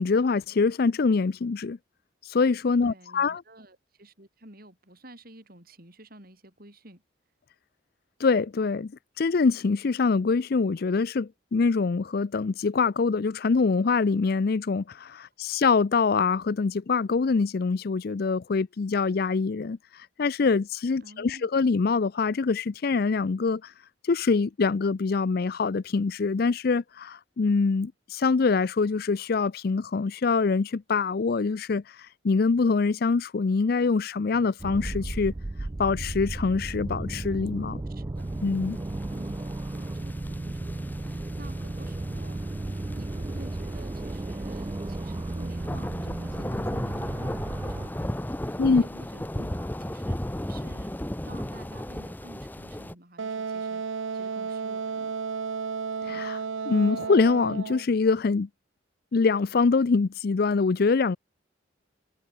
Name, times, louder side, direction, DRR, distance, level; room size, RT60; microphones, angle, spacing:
voice 1, 0.0-1.8 2.3-3.4 8.2-8.9 9.2-19.8 20.2-23.7 24.1-35.3 35.8-37.8 38.4-38.8 48.6-48.8 56.0-56.4 56.7-58.5 59.1-61.2, left 4 dB, 50° left, 0.4 m, -24 dB
voice 2, 2.8-7.0 21.0-21.5 37.9-38.3 39.1-39.4 39.7-42.6 42.9-51.0 51.2-55.2, right 1 dB, 45° right, 6.7 m, -50 dB
sound 1, 34.6-47.9, right 2 dB, 20° right, 0.4 m, -34 dB
sound 2, 38.8-52.9, left 1 dB, 10° left, 0.8 m, -36 dB
Wind instrument woodwind instrument, 53.2-57.9, right 5 dB, 75° right, 0.6 m, -33 dB
head